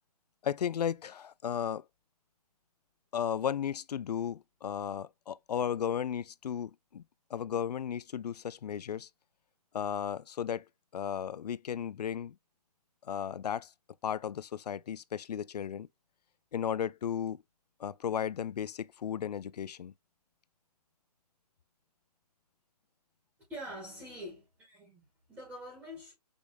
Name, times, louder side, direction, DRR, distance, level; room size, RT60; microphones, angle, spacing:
voice 1, 0.4-1.8 3.1-7.0 7.3-9.1 9.7-10.6 10.9-12.4 13.1-13.7 14.0-15.9 16.5-17.4 17.8-19.9, left 8 dB, 80° left, 0.4 m, -34 dB
voice 2, 23.5-26.1, equal, 10° right, 1.9 m, -45 dB
5.2 x 3.0 x 2.4 m
hypercardioid pair, 150°, 20 cm